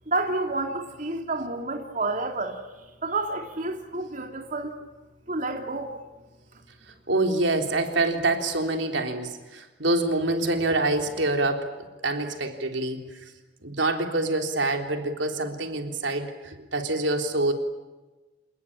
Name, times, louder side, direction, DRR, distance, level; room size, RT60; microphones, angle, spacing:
voice 1, 0.1-2.6 3.0-4.7 5.3-6.0, right 2 dB, 45° right, 3 dB, 2.9 m, -29 dB
voice 2, 7.1-11.7 12.0-13.1 13.6-17.5, right 2 dB, 75° right, 5 dB, 3.5 m, -26 dB
28.0 x 20.5 x 9.9 m, 1.1 s
head